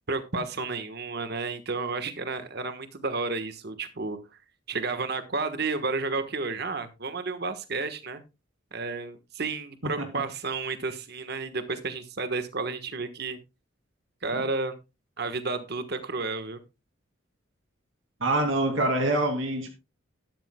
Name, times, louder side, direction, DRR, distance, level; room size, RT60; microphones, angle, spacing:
voice 1, 0.1-4.2 4.7-8.2 8.7-13.4 14.2-14.7 15.2-16.6, right 3 dB, 55° right, 1.3 m, -31 dB
voice 2, 18.2-19.7, right 1 dB, 75° right, 2.5 m, -25 dB
12.5 x 12.5 x 2.3 m
head